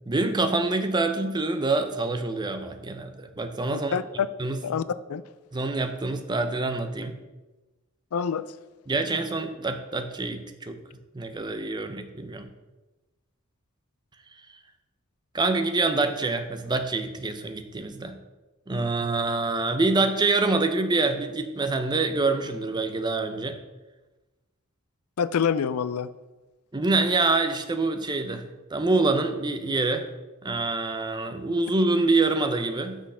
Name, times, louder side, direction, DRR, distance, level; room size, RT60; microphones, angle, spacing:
voice 1, 0.1-3.9 4.4-4.6 5.5-7.2 8.9-10.8 11.1-12.5 15.3-18.2 18.7-23.6 26.7-28.4 28.7-30.1 30.4-33.0, right 3 dB, 20° right, 8 dB, 0.6 m, -26 dB
voice 2, 3.7-4.3 4.6-4.8 5.1-5.2 8.1-8.5 25.2-26.1, left 7 dB, 85° left, 15 dB, 0.4 m, -26 dB
6.3 x 6.2 x 5.5 m, 1.1 s
head